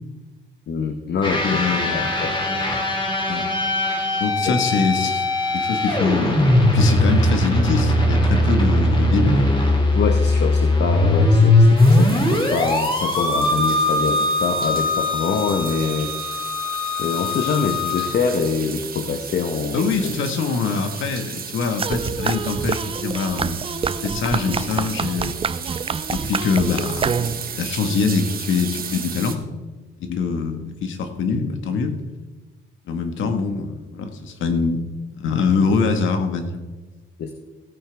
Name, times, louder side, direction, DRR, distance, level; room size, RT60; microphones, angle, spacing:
voice 1, 0.7-2.3 4.5-4.6 9.9-16.4 17.0-20.1 30.1-30.2 37.2-37.3, left 5 dB, 60° left, 6 dB, 1.1 m, -25 dB
sound 1, 1.2-18.1, left 2 dB, 25° left, 2.7 m, -19 dB
voice 2, 1.4-2.0 3.3-3.5 4.1-9.4 19.7-23.6 24.0-25.3 26.1-29.4 30.0-32.0 32.9-34.8 35.2-36.6, left 5 dB, 75° left, 7 dB, 1.6 m, -24 dB
sound 2, 11.8-29.3, right 7 dB, 50° right, 1.4 m, -35 dB
sound 3, 21.8-27.6, right 6 dB, 30° right, 0.5 m, -27 dB
16.5 x 9.1 x 3.5 m, 1.2 s
cardioid pair, 90°, 20 cm